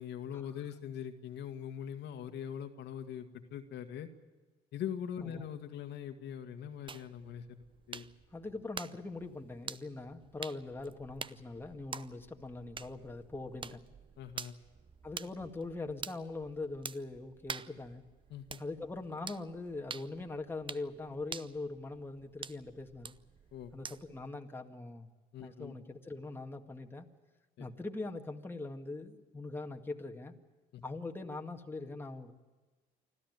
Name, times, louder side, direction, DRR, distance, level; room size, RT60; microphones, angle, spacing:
voice 1, 0.0-4.1 4.7-7.6 7.9-8.1 14.2-14.6 18.3-18.6 23.5-23.7 25.3-25.7 27.6-27.7 30.7-30.8, left 9 dB, 65° left, 6 dB, 1.9 m, -42 dB
sound 1, 6.9-24.3, right 5 dB, 25° right, 0.7 m, -48 dB
voice 2, 8.3-13.8 15.0-18.0 18.6-23.1 23.7-25.1 25.4-27.1 27.6-30.4 30.8-32.3, left 3 dB, 10° left, 3 dB, 1.9 m, -42 dB
25.0 x 14.0 x 9.5 m, 1.3 s
supercardioid pair, 90°, 19 cm